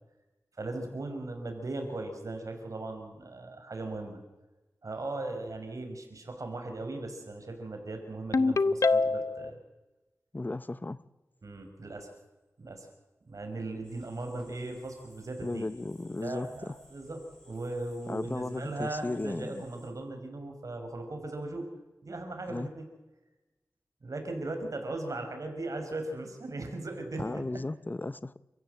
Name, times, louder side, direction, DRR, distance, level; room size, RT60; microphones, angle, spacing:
voice 1, 0.6-4.2 4.8-9.6 11.4-12.1 12.6-12.9 13.3-15.7 16.2-21.7 22.0-22.9 24.0-27.6, right 2 dB, 65° right, 5.3 m, -38 dB
Ringtone, 8.3-9.5, left 3 dB, 60° left, 0.7 m, -24 dB
voice 2, 10.3-11.0 15.4-16.7 18.1-19.6 22.5-22.7 27.2-28.4, left 2 dB, 30° left, 0.9 m, -35 dB
sound 1, 13.8-19.9, equal, 15° left, 7.7 m, -59 dB
29.5 x 15.0 x 7.9 m
wide cardioid pair, 85°, 6 cm